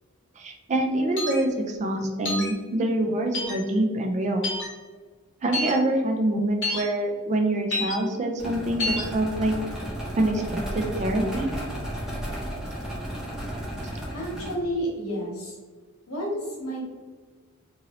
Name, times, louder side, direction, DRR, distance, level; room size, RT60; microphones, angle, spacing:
voice 1, 0.4-4.5 5.4-9.5 10.2-11.5, right 1 dB, 30° right, 3 dB, 0.4 m, -25 dB
sound 1, 1.2-1.4 2.3-2.5 3.3-3.6 4.4-4.7 5.5-5.7 6.6-6.8 7.7-8.0 8.8-9.0, left 2 dB, 55° left, 0.9 m, -28 dB
sound 2, 8.4-14.5, equal, 5° right, 0.7 m, -33 dB
voice 2, 14.1-15.6 16.1-16.8, equal, 80° left, -3 dB, 1.1 m, -30 dB
2.7 x 2.7 x 2.9 m, 1.4 s
head